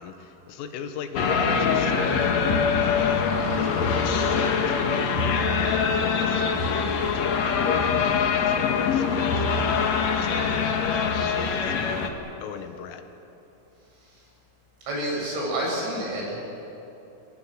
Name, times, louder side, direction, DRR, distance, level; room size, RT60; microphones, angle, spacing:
voice 1, 0.0-12.1 12.4-13.0, left 7 dB, 90° left, 7 dB, 4.2 m, -37 dB
sound 1, 1.1-12.1, left 5 dB, 70° left, 1.6 m, -23 dB
voice 2, 14.9-16.3, right 1 dB, 65° right, -3 dB, 9.7 m, -28 dB
28.0 x 23.0 x 7.7 m, 2.9 s
omnidirectional pair, 5.8 m